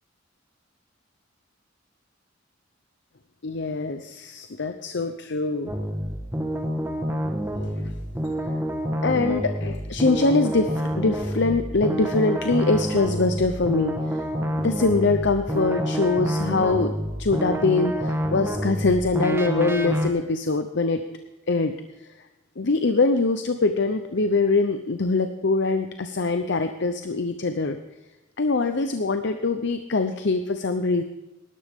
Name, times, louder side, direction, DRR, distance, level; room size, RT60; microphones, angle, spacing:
voice 1, 3.4-5.7 7.7-7.9 9.0-14.2 14.6-16.9 17.2-21.0 21.5-21.7 22.6-27.8 28.4-31.0, left 3 dB, 60° left, 8 dB, 0.8 m, -23 dB
sound 1, 5.7-20.1, equal, 15° right, 1.3 m, -28 dB
18.0 x 12.0 x 3.6 m, 1.1 s
head